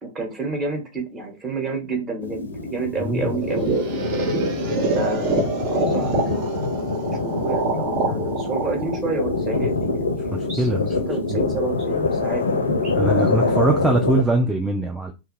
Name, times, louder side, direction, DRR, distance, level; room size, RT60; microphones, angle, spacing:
voice 1, 0.0-4.0 4.9-10.2 10.5-12.9 13.5-13.7, right 3 dB, 30° right, 1.1 m, -30 dB
sound 1, 2.2-14.2, left 3 dB, 75° left, 0.4 m, -25 dB
voice 2, 3.0-3.4 10.3-11.0 11.3-11.4 13.0-15.1, right 2 dB, 10° right, 0.4 m, -22 dB
sound 2, 3.2-10.1, right 3 dB, 45° right, 0.6 m, -26 dB
2.5 x 2.2 x 3.1 m
figure-of-eight pair, 90°, 0 cm